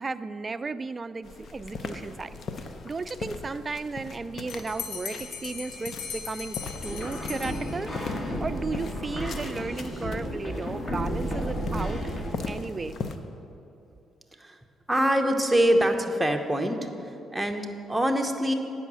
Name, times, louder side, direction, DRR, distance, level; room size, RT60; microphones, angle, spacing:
voice 1, 0.0-2.4 2.8-6.6 6.8-7.9 8.4-12.1 12.5-12.9, right 3 dB, 30° right, 12 dB, 0.3 m, -34 dB
sound 1, 1.2-13.2, left 4 dB, 55° left, 0.7 m, -40 dB
Bell, 4.5-8.1, left 6 dB, 80° left, 0.9 m, -39 dB
sound 2, 6.8-12.3, equal, 25° left, 1.3 m, -32 dB
voice 2, 14.9-18.5, equal, 5° right, 4 dB, 0.8 m, -25 dB
9.1 x 5.5 x 7.4 m, 2.8 s
cardioid pair, 90°, 0 cm